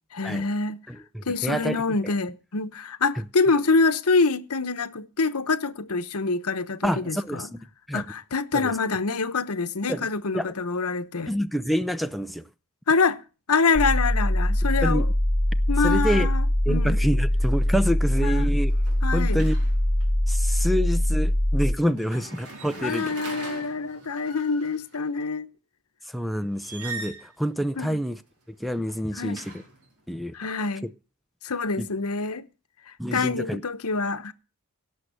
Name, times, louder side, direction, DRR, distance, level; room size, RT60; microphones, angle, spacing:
voice 1, 0.1-0.8 1.3-7.5 7.9-11.3 12.9-13.2 13.5-15.1 15.7-17.0 18.2-18.5 19.0-19.4 22.8-25.5 27.8-28.0 29.2-29.4 30.3-30.9 31.4-32.4 33.1-34.3, left 4 dB, 80° left, 1.0 m, -26 dB
voice 2, 0.9-2.1 6.8-7.6 7.9-8.0 8.5-8.7 9.9-10.1 10.3-10.5 11.3-12.4 14.8-15.1 15.8-16.3 16.7-18.7 19.1-19.6 20.3-23.1 26.1-28.2 28.6-29.6 30.1-30.3 31.8-31.9 33.0-33.6, equal, ahead, 0.6 m, -27 dB
sound 1, 13.7-21.7, left 1 dB, 25° left, 1.6 m, -22 dB
sound 2, 17.3-17.6 17.9-20.1 21.9-25.0 26.5-27.3 28.5-29.9, right 3 dB, 80° right, 4.4 m, -41 dB
17.5 x 6.6 x 6.7 m
head